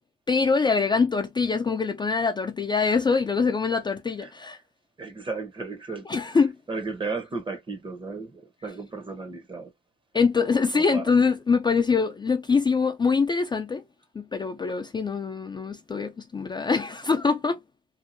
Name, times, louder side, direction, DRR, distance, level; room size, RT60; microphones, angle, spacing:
voice 1, 0.3-4.6 6.1-6.5 10.1-13.8 14.2-17.6, left 5 dB, 20° left, 0.4 m, -24 dB
voice 2, 5.0-6.4 6.7-9.7 10.7-11.1, right 4 dB, 25° right, 0.9 m, -35 dB
2.7 x 2.3 x 2.6 m
cardioid pair, 90°, 20 cm